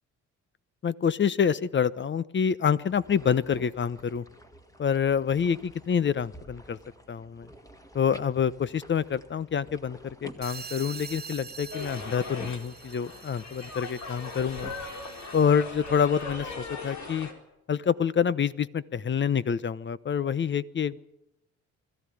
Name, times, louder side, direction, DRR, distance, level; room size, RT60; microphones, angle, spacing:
voice 1, 0.8-4.2 4.8-6.8 7.1-7.5 7.9-14.7 15.3-17.3 17.7-21.0, left 7 dB, 40° left, 18 dB, 0.9 m, -27 dB
sound 1, 2.7-17.1, equal, 10° left, 2.0 m, -51 dB
sound 2, 10.4-15.6, right 6 dB, 30° right, 1.0 m, -45 dB
sound 3, 11.7-17.3, left 3 dB, 70° left, 4.4 m, -39 dB
21.5 x 14.5 x 10.0 m, 0.87 s
cardioid pair, 90°, 30 cm